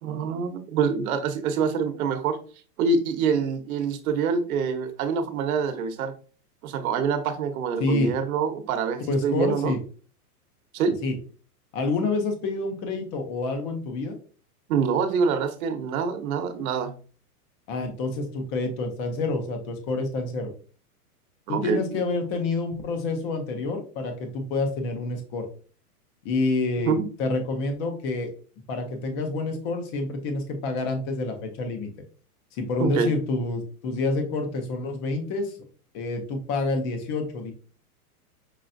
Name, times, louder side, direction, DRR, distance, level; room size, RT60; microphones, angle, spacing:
voice 1, 0.0-2.4 2.8-6.1 6.6-9.8 10.7-11.0 14.7-16.9 21.5-21.8 26.9-27.0 32.8-33.1, right 5 dB, 65° right, 8 dB, 1.0 m, -25 dB
voice 2, 7.8-8.1 9.1-9.8 11.0-11.1 11.7-14.1 17.7-20.5 21.5-25.5 26.2-28.3 28.7-31.9 32.6-35.6 35.9-37.5, left 3 dB, 20° left, 5 dB, 0.4 m, -28 dB
5.5 x 3.1 x 2.5 m, 0.40 s
hypercardioid pair, 150°, 46 cm